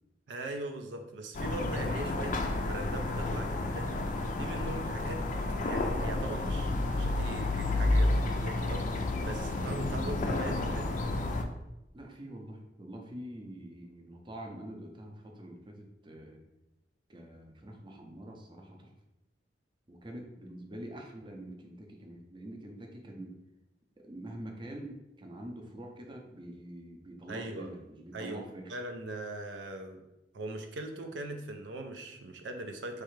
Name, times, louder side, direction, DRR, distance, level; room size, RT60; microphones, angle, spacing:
voice 1, 0.3-3.9 4.4-5.2 5.6-10.9 27.3-27.7 28.1-28.4 28.7-30.0 30.3-33.0, right 2 dB, 80° right, 5 dB, 0.5 m, -40 dB
sound 1, 1.3-11.4, left 2 dB, 45° left, 0.4 m, -31 dB
voice 2, 11.9-16.4 17.1-18.9 19.9-23.3 24.0-28.7, right 1 dB, 25° right, 2 dB, 0.6 m, -45 dB
4.7 x 3.2 x 3.1 m, 0.94 s
head